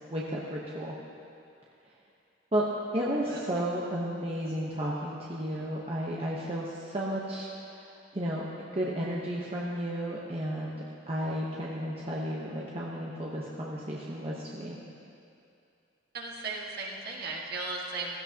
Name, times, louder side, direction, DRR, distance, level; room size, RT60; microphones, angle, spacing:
voice 1, 0.1-0.9 2.5-2.6 2.9-7.8 8.1-8.5 8.7-14.8, equal, 30° right, -5 dB, 0.9 m, -33 dB
voice 2, 16.1-18.2, right 3 dB, 50° right, -2 dB, 1.6 m, -36 dB
16.0 x 15.0 x 2.9 m, 2.6 s
head